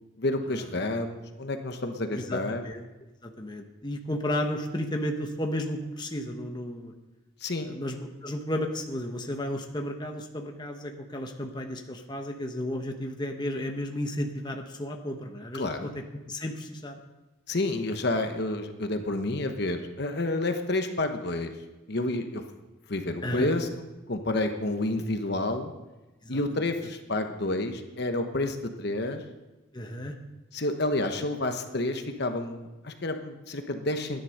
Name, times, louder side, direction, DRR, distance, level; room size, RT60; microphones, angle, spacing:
voice 1, 0.2-2.6 7.4-7.8 15.5-16.0 17.5-21.5 21.9-22.4 22.9-23.7 24.1-25.7 26.3-29.2 30.5-34.2, left 2 dB, 50° left, 6 dB, 1.0 m, -29 dB
voice 2, 2.1-2.8 3.2-6.9 7.6-15.9 16.3-17.0 23.2-23.5 26.2-26.4 29.7-30.2, left 1 dB, 20° left, 3 dB, 1.1 m, -33 dB
13.5 x 10.5 x 6.5 m, 1.1 s
head